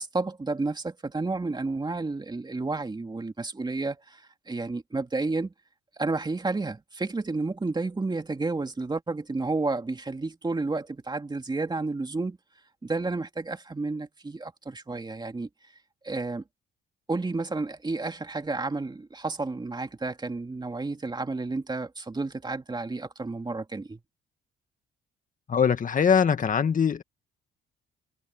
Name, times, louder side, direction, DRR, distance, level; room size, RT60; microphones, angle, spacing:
voice 1, 0.0-5.5 6.0-12.4 12.8-15.5 16.0-16.4 17.1-24.0, right 3 dB, 20° right, 2.8 m, -31 dB
voice 2, 25.5-27.0, left 7 dB, 40° left, 1.6 m, -22 dB
cardioid pair, 90°, 20 cm